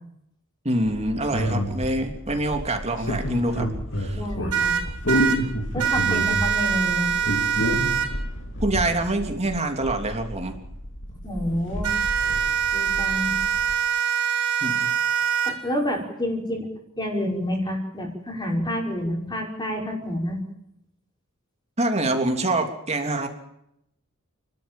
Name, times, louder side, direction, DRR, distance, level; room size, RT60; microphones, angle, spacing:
voice 1, 0.6-3.7 4.0-4.2 8.6-10.5 14.6-14.9 21.8-23.3, right 2 dB, 30° right, 5 dB, 3.3 m, -25 dB
sound 1, 1.0-13.7, equal, 60° left, 4.2 m, -30 dB
voice 2, 4.1-4.8 5.7-7.1 11.2-11.9 12.7-13.4 15.4-16.7 17.0-20.4, equal, 20° left, 1 dB, 5.6 m, -28 dB
sound 2, 4.5-5.4 5.8-8.1 11.8-15.5, right 8 dB, 80° right, 4.7 m, -24 dB
29.5 x 13.0 x 9.1 m, 0.78 s
head